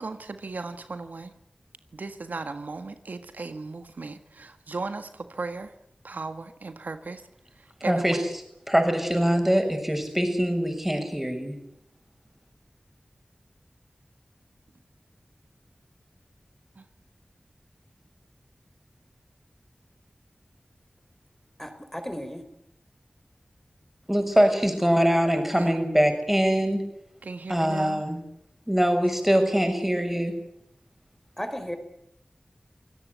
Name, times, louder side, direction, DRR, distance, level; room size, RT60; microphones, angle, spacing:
voice 1, 0.0-1.3 1.9-5.7 6.0-7.2 7.6-8.3 16.7-16.8 25.5-25.7 27.2-28.0, right 3 dB, 90° right, 9 dB, 1.6 m, -36 dB
voice 2, 7.8-8.2 8.7-11.6 24.1-26.8 27.5-28.2 28.7-30.4, equal, 10° right, 5 dB, 6.9 m, -23 dB
voice 3, 21.6-22.4 31.4-31.8, equal, 10° left, 8 dB, 4.5 m, -34 dB
27.0 x 17.5 x 8.2 m, 0.76 s
wide cardioid pair, 45°, 3 cm